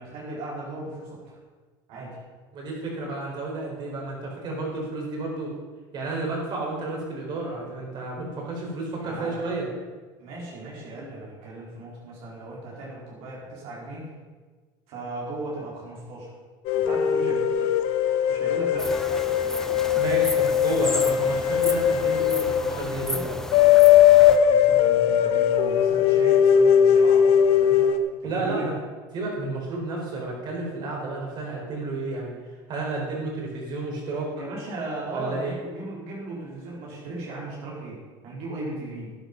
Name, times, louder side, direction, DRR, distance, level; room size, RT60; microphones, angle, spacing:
voice 1, 0.0-1.3 1.9-2.2 9.0-9.4 10.2-14.1 14.9-16.3 16.7-17.7 18.3-19.0 20.6-21.0 24.5-27.9 28.2-28.7 34.3-38.0 38.2-39.1, right 2 dB, 60° right, -4 dB, 4.3 m, -37 dB
voice 2, 2.5-5.6 5.9-9.7 20.0-23.4 28.2-28.7 29.1-32.4 32.7-34.3 35.1-35.5, right 2 dB, 40° right, -1 dB, 4.5 m, -31 dB
sound 1, 16.6-28.0, left 9 dB, 55° left, 1.0 m, -19 dB
sound 2, 18.8-24.4, left 1 dB, 5° left, 0.8 m, -34 dB
12.5 x 9.3 x 5.3 m, 1.4 s
supercardioid pair, 125°, 11 cm